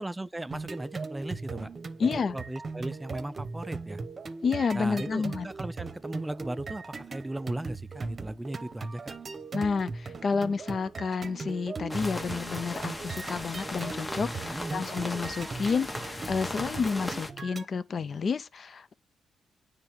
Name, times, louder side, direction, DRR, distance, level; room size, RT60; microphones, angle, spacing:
voice 1, 0.0-1.7 2.0-4.0 4.7-9.2 14.5-14.8, right 1 dB, 15° right, 0.4 m, -37 dB
sound 1, 0.5-17.7, right 4 dB, 45° right, 0.8 m, -39 dB
voice 2, 2.0-2.4 4.4-5.5 9.5-18.9, left 5 dB, 55° left, 0.5 m, -30 dB
sound 2, 11.9-17.3, left 1 dB, 20° left, 1.0 m, -38 dB
9.1 x 3.4 x 3.5 m
supercardioid pair, 60°, 0 cm